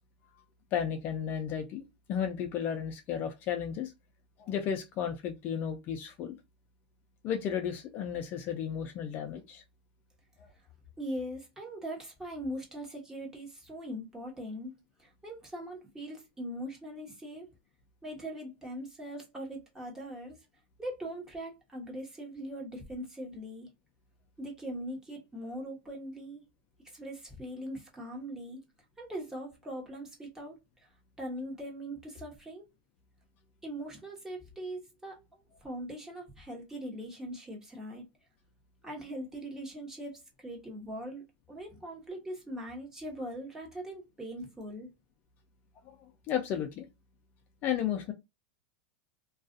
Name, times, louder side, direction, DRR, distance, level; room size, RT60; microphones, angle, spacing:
voice 1, 0.7-1.8 2.1-3.9 4.4-6.4 7.2-9.6 10.4-10.5 45.9-46.9 47.6-48.1, left 8 dB, 40° left, 0.4 m, -33 dB
voice 2, 11.0-17.5 18.0-20.4 20.8-23.7 24.4-26.4 26.8-28.6 29.0-30.9 31.2-32.7 33.6-38.0 38.8-44.9, equal, 10° right, 1.0 m, -41 dB
2.4 x 2.3 x 2.5 m
supercardioid pair, 135°, 5 cm